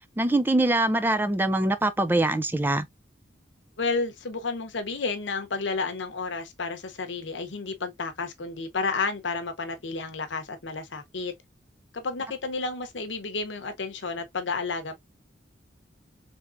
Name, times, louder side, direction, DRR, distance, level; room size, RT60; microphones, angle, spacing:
voice 1, 0.2-2.9, right 2 dB, 10° right, 0.4 m, -23 dB
voice 2, 3.8-11.3 11.9-15.0, left 4 dB, 90° left, 0.8 m, -31 dB
3.6 x 3.4 x 2.5 m
head